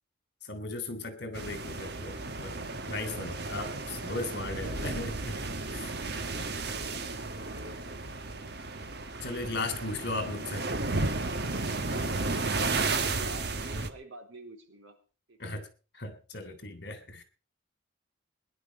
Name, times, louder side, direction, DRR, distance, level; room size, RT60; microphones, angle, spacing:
voice 1, 0.4-2.6 2.9-5.4 5.7-5.9 9.2-10.7 15.4-15.6 15.9-17.2, left 2 dB, 55° left, 3.3 m, -37 dB
sound 1, 1.3-13.9, right 3 dB, 50° right, 1.4 m, -33 dB
voice 2, 7.3-8.5 9.7-9.8 10.8-11.3 12.7-15.0 15.3-15.7, right 1 dB, 70° right, 4.1 m, -50 dB
20.0 x 11.0 x 5.3 m
head